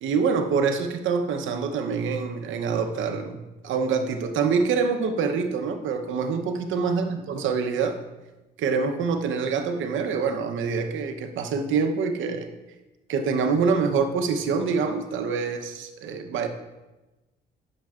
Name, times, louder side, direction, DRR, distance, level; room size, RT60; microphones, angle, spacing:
voice 1, 0.0-8.0 8.6-12.5 13.1-16.5, right 5 dB, 80° right, 7 dB, 0.9 m, -25 dB
10.5 x 6.9 x 2.4 m, 1.1 s
cardioid pair, 90°, 20 cm